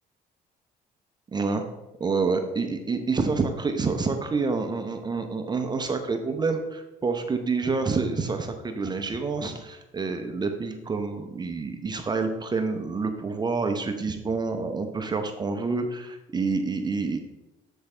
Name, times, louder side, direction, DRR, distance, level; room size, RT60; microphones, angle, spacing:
voice 1, 1.3-1.7 2.0-17.2, right 4 dB, 25° right, 6 dB, 0.8 m, -28 dB
8.0 x 7.1 x 3.3 m, 0.98 s
cardioid pair, 105°, 17 cm